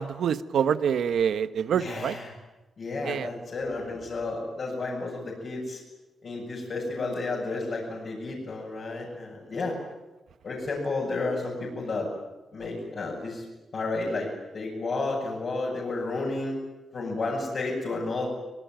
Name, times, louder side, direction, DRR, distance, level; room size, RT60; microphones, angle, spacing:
voice 1, 0.0-2.1 3.0-3.3, right 8 dB, 70° right, 12 dB, 1.2 m, -26 dB
voice 2, 1.7-2.3 2.8-5.8 6.2-9.8 10.4-12.1 12.5-13.5 13.7-16.6 16.9-18.3, left 3 dB, 45° left, -5 dB, 7.2 m, -32 dB
25.0 x 23.5 x 9.2 m, 1.1 s
wide cardioid pair, 170°, 0 cm